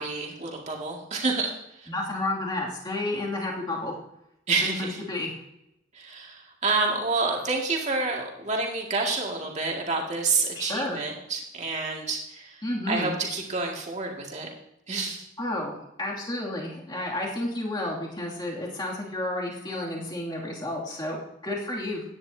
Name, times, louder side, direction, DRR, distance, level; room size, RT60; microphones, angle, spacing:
voice 1, 0.0-1.5 1.8-1.9 4.5-5.0 5.9-12.6 12.9-14.5 14.9-15.2, right 3 dB, 40° right, -1 dB, 2.2 m, -28 dB
voice 2, 1.9-3.9 4.8-5.3 10.5-11.0 12.6-13.1 15.4-22.0, left 1 dB, 25° left, -4 dB, 2.6 m, -31 dB
16.0 x 10.0 x 2.8 m, 0.82 s
head